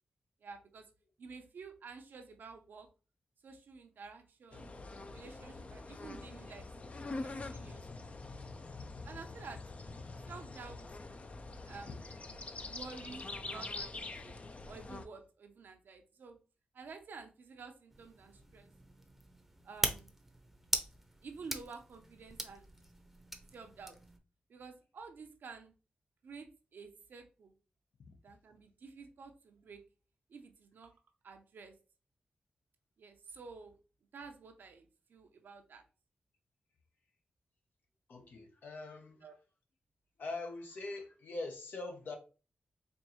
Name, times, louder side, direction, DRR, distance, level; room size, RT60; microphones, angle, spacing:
voice 1, 0.4-0.9 1.2-2.9 3.4-4.7 5.1-8.1 9.0-9.6 10.3-10.8 11.7-11.9 12.7-14.4 14.7-16.4 16.7-18.7 19.6-20.1 21.2-22.7 23.5-24.0 24.5-25.7 26.2-27.5 28.2-29.8 30.3-30.9 31.2-31.7 33.0-33.7 34.1-35.8 39.2-39.3, right 4 dB, 80° right, 0.7 m, -51 dB
sound 1, 4.5-15.1, left 3 dB, 40° left, 0.5 m, -45 dB
sound 2, 17.9-24.2, right 1 dB, 5° right, 0.7 m, -41 dB
voice 2, 38.1-39.4 40.2-42.2, left 3 dB, 75° left, 0.9 m, -43 dB
4.4 x 2.7 x 2.9 m
cardioid pair, 60°, 3 cm